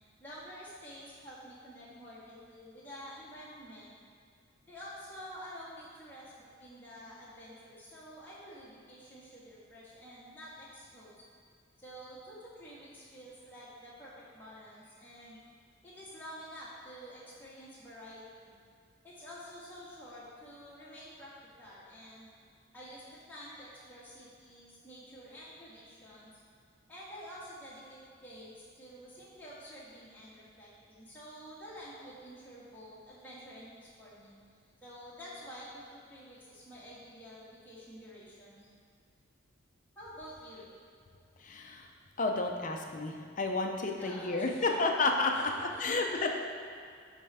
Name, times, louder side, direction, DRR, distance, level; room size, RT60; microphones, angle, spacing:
voice 1, 0.2-3.9 4.7-11.1 11.8-15.4 15.8-18.6 19.0-22.3 22.7-26.3 26.9-34.4 34.8-38.7 39.9-40.8 44.0-44.8 45.3-46.3, equal, 10° left, -9 dB, 1.7 m, -49 dB
voice 2, 41.4-41.9 42.2-46.3, left 3 dB, 40° left, 2 dB, 0.6 m, -31 dB
8.2 x 3.4 x 5.5 m, 2.4 s
head